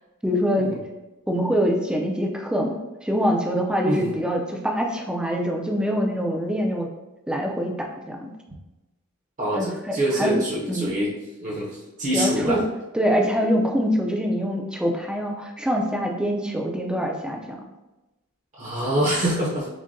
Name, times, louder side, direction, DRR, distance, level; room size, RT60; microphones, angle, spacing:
voice 1, 0.2-0.7 1.3-2.7 3.0-6.9 7.3-8.3 9.5-10.4 10.7-11.0 12.1-12.6 12.9-17.4, equal, 5° right, 1 dB, 0.4 m, -24 dB
voice 2, 3.8-4.1 9.4-11.1 11.4-12.6 18.6-19.7, equal, 35° right, -4 dB, 0.7 m, -25 dB
6.2 x 2.2 x 2.6 m, 1.0 s
head